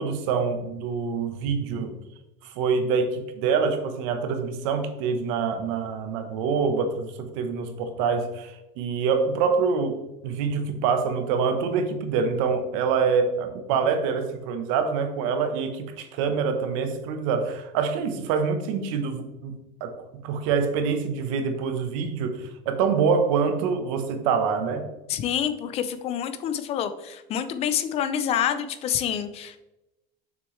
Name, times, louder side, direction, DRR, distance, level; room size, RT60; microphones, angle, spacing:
voice 1, 0.0-2.0 2.4-24.8, right 5 dB, 85° right, 8 dB, 1.0 m, -26 dB
voice 2, 25.1-29.6, left 9 dB, 40° left, 11 dB, 0.5 m, -27 dB
6.8 x 6.1 x 3.2 m, 0.97 s
cardioid pair, 155°, 16 cm